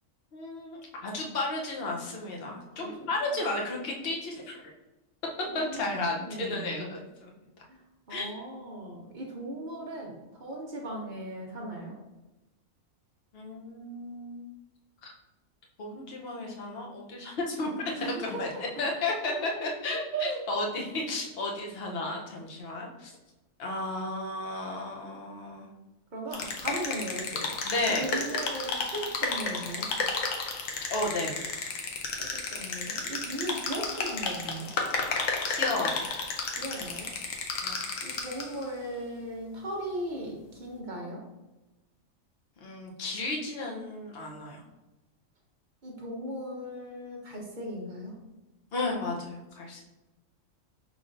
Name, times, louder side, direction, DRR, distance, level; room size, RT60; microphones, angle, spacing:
voice 1, 0.3-4.6 5.5-7.3 8.1-8.3 13.3-14.5 15.0-15.1 15.8-19.3 19.6-23.1 23.6-25.7 27.6-28.1 30.9-31.4 35.4-36.0 37.6-37.8 42.6-44.6 48.7-49.8, left 2 dB, 50° left, -1 dB, 0.9 m, -33 dB
voice 2, 5.5-5.9 6.2-6.9 7.7-7.8 8.1-11.9 18.0-18.9 20.1-20.4 26.1-27.5 28.0-29.9 32.2-34.7 36.6-37.1 38.0-41.2 45.8-48.1, right 1 dB, 45° right, -1 dB, 0.8 m, -37 dB
sound 1, 26.3-38.6, left 4 dB, 75° left, 1.1 m, -33 dB
5.4 x 3.2 x 2.5 m, 1.1 s
omnidirectional pair, 1.4 m